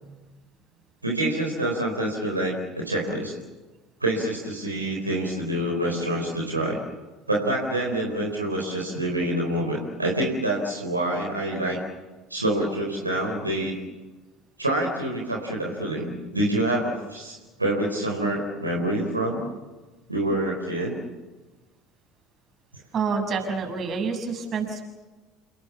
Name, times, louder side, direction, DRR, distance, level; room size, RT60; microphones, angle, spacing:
voice 1, 1.0-3.3 4.0-6.8 7.3-11.8 12.3-13.8 14.6-19.5 20.1-21.0, right 1 dB, 90° right, -1 dB, 4.0 m, -26 dB
voice 2, 22.9-24.8, right 5 dB, 40° right, 4 dB, 6.9 m, -28 dB
29.5 x 20.5 x 7.1 m, 1.2 s
figure-of-eight pair, 65°, 0 cm